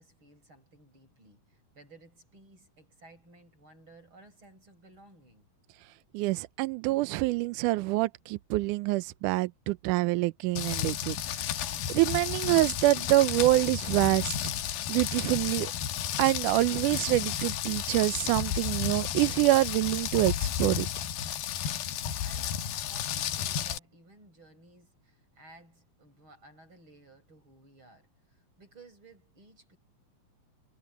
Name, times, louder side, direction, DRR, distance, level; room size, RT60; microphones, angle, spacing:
voice 1, 0.0-5.5 21.8-29.8, right 2 dB, 30° right, 8.3 m, -56 dB
voice 2, 6.1-11.2 11.9-14.4 14.9-15.7 16.2-20.3 20.6-20.9, right 18 dB, 85° right, 1.8 m, -26 dB
Rain, 10.6-23.8, left 9 dB, 85° left, 3.1 m, -32 dB
omnidirectional pair, 4.3 m